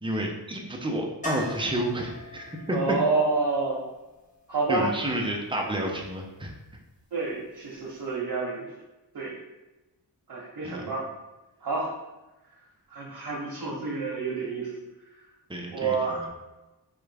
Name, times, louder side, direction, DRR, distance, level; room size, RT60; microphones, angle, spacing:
voice 1, 0.0-2.8 4.7-6.5 10.6-11.0 15.5-16.3, right 1 dB, 15° right, 0 dB, 0.6 m, -30 dB
sound 1, 1.2-5.1 7.8-7.9 8.1-8.2, left 2 dB, 20° left, 0.8 m, -42 dB
voice 2, 2.7-3.8 4.5-4.9 7.1-8.7 9.1-9.3 10.3-11.1 11.6-11.9 12.9-14.7 15.7-16.3, right 3 dB, 65° right, -5 dB, 0.9 m, -28 dB
3.6 x 2.3 x 3.3 m, 1.1 s
cardioid pair, 60°, 40 cm